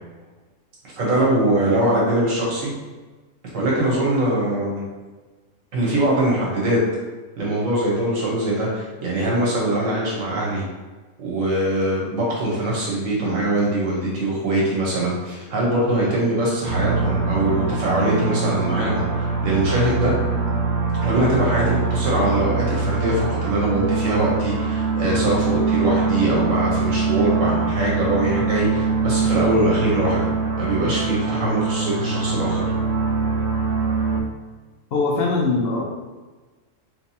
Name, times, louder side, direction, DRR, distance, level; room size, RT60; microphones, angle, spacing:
voice 1, 0.9-2.7 3.5-4.8 5.7-6.8 7.4-10.6 11.2-20.1 21.0-30.3 30.6-32.6, right 1 dB, 85° right, -4 dB, 1.4 m, -22 dB
sound 1, 16.6-34.2, right 4 dB, 65° right, 0.4 m, -23 dB
voice 2, 34.9-35.8, left 3 dB, 60° left, -1 dB, 0.7 m, -21 dB
3.3 x 3.2 x 2.7 m, 1.3 s
omnidirectional pair, 1.3 m